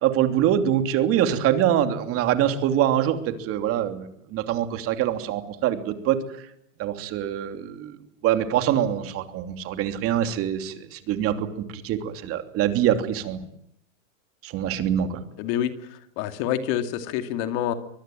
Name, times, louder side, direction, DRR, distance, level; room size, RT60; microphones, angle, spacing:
voice 1, 0.0-6.2 6.8-7.9 8.2-13.4 14.4-15.2, right 10 dB, 35° right, 8 dB, 3.0 m, -24 dB
voice 2, 15.4-17.7, left 10 dB, 45° left, 9 dB, 2.4 m, -27 dB
24.5 x 20.5 x 9.1 m, 0.74 s
supercardioid pair, 140°, 40 cm